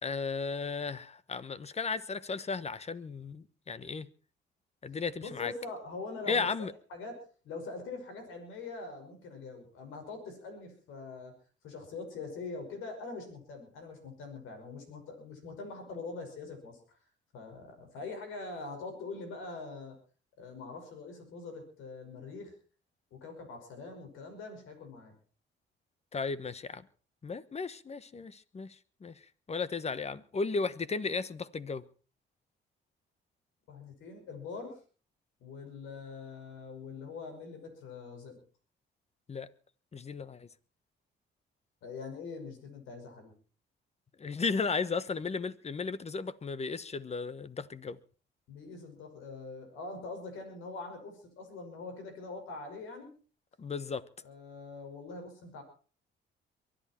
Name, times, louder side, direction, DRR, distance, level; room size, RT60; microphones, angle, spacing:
voice 1, 0.0-4.1 4.8-5.5 6.3-6.7 26.1-26.8 27.2-28.7 29.0-29.1 29.5-31.8 39.3-39.5 39.9-40.5 44.2-48.0 53.6-54.0, left 4 dB, 35° left, 1.2 m, -35 dB
voice 2, 5.2-7.2 7.4-11.3 11.6-17.0 17.3-19.9 20.4-22.5 23.1-25.1 33.7-34.8 35.4-38.4 41.8-43.3 48.5-53.1 54.2-55.6, left 3 dB, 90° left, 5.7 m, -43 dB
23.0 x 11.5 x 4.5 m
cardioid pair, 90°, 20 cm